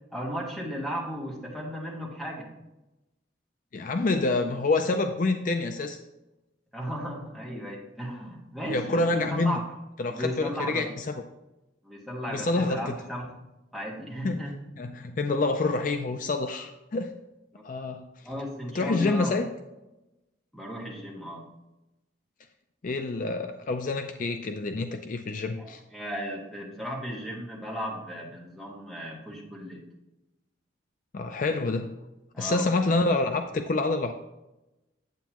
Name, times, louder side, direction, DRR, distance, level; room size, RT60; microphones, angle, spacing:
voice 1, 0.0-2.5 6.7-9.6 10.1-10.9 11.8-13.4 13.7-14.6 17.5-17.6 18.2-19.3 20.5-21.5 25.6-29.8 32.3-32.7, equal, ahead, -4 dB, 1.8 m, -35 dB
voice 2, 3.7-6.0 8.7-9.6 10.0-11.2 12.3-12.9 14.2-14.5 14.8-17.2 17.6-18.1 18.7-19.5 22.8-25.8 31.1-32.0 32.4-34.1, left 3 dB, 45° left, 6 dB, 0.4 m, -27 dB
9.2 x 8.1 x 3.0 m, 0.99 s
head